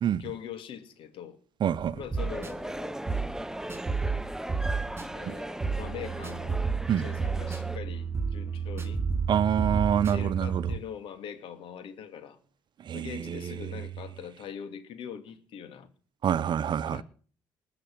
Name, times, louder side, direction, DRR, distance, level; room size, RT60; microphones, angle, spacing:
voice 1, 0.2-1.4 1.9-3.0 5.1-6.6 7.0-9.0 9.9-12.4 12.9-15.9 16.9-17.0, left 8 dB, 65° left, 2.4 m, -42 dB
voice 2, 1.6-2.0 5.3-5.4 6.9-7.1 9.3-10.7 12.8-13.7 16.2-17.0, right 9 dB, 55° right, 0.8 m, -27 dB
sound 1, 1.8-10.8, right 5 dB, 25° right, 3.5 m, -32 dB
sound 2, 2.2-7.8, right 1 dB, 5° right, 0.8 m, -38 dB
20.0 x 7.8 x 7.6 m
hypercardioid pair, 60°, 9 cm